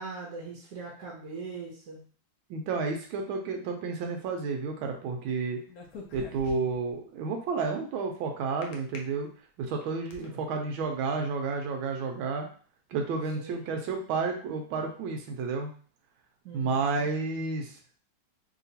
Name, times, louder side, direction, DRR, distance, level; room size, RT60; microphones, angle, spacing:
voice 1, 0.0-2.0 10.2-10.4 13.3-13.6 16.4-17.1, right 4 dB, 65° right, -3 dB, 1.1 m, -41 dB
voice 2, 2.5-5.6 6.1-9.3 9.6-12.5 12.9-15.7 16.5-17.7, right 4 dB, 90° right, 3 dB, 1.4 m, -31 dB
sound 1, 5.7-6.9 8.6-9.0 9.6-10.2, left 3 dB, 75° left, 0.8 m, -44 dB
3.3 x 2.8 x 2.7 m, 0.43 s
omnidirectional pair, 2.2 m